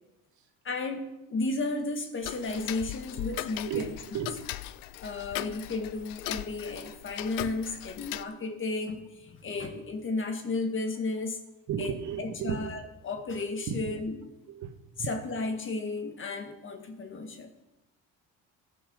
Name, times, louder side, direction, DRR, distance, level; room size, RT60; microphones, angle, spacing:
voice 1, 0.6-3.9 5.0-11.4 11.8-11.9 12.2-14.2 15.1-17.5, left 3 dB, 35° left, 6 dB, 1.9 m, -33 dB
Tick-tock, 2.2-8.2, left 15 dB, 80° left, 0.6 m, -38 dB
voice 2, 3.7-4.4 11.7-12.7 13.7-14.0 14.5-14.7 15.0-15.1, right 8 dB, 60° right, 7 dB, 1.5 m, -34 dB
14.5 x 7.1 x 6.5 m, 0.94 s
cardioid pair, 105°, 33 cm